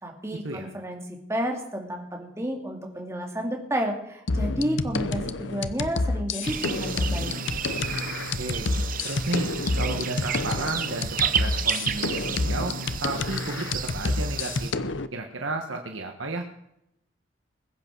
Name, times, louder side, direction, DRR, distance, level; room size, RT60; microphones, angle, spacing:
voice 1, 0.0-1.0 1.3-7.3, equal, 15° right, 1 dB, 2.4 m, -31 dB
sound 1, 4.3-15.1, left 3 dB, 70° left, 0.8 m, -29 dB
sound 2, 6.4-14.7, right 8 dB, 45° right, 0.8 m, -32 dB
voice 2, 8.3-8.7 9.0-9.5 9.8-12.7 13.0-14.7 15.1-16.4, right 2 dB, 75° right, 3 dB, 1.5 m, -32 dB
21.0 x 8.2 x 6.2 m, 0.79 s
head